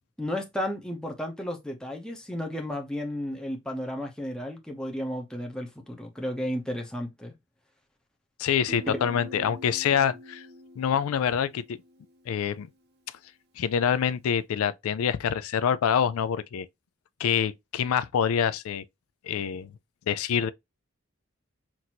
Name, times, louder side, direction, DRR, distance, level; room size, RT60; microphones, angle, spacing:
voice 1, 0.2-7.3 9.3-9.5, left 1 dB, 5° left, 0.7 m, -33 dB
voice 2, 8.4-10.5 10.8-11.6 12.3-12.7 13.6-16.7 17.2-18.8 19.2-19.7 20.1-20.5, left 8 dB, 85° left, 0.3 m, -26 dB
Guitar, 8.7-12.3, equal, 50° right, 0.7 m, -45 dB
5.9 x 2.6 x 2.8 m
head